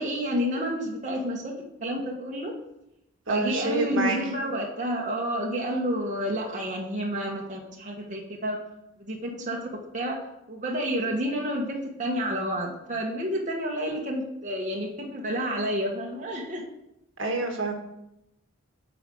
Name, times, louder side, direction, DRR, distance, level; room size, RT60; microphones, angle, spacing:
voice 1, 0.0-1.5 1.8-2.5 3.3-8.6 9.0-9.7 9.9-10.2 10.5-16.6, equal, 35° right, -2 dB, 1.3 m, -29 dB
voice 2, 3.3-4.2 17.2-17.7, right 3 dB, 65° right, 3 dB, 1.7 m, -27 dB
9.2 x 4.9 x 7.6 m, 0.86 s
head